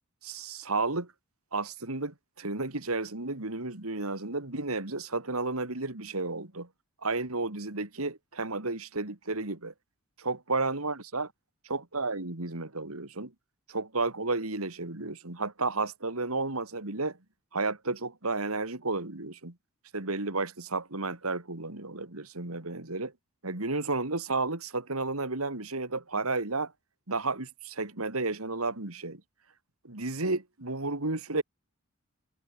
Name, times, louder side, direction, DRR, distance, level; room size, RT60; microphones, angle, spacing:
voice 1, 0.2-1.1 1.5-6.7 7.0-9.7 10.2-11.3 11.6-13.3 13.7-17.2 17.5-19.5 19.9-23.1 23.4-26.7 27.1-29.2 29.8-31.4, right 3 dB, 85° right, 3.0 m, -32 dB
head